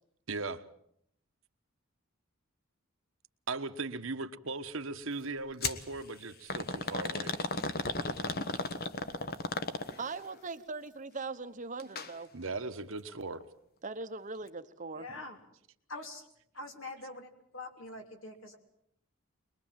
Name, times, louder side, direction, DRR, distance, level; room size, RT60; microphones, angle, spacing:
voice 1, 0.3-0.6 3.5-7.3 12.3-13.4, right 3 dB, 65° right, 1.2 m, -38 dB
sound 1, 5.6-5.8 6.5-10.2 11.8-12.1 12.5-12.6 13.4-13.5, left 3 dB, 45° left, 1.4 m, -34 dB
voice 2, 10.0-12.3 13.8-15.1, right 3 dB, 35° right, 1.1 m, -40 dB
voice 3, 15.0-15.4 15.9-16.2 16.5-18.6, left 2 dB, 60° left, 3.4 m, -44 dB
22.5 x 21.5 x 7.6 m
head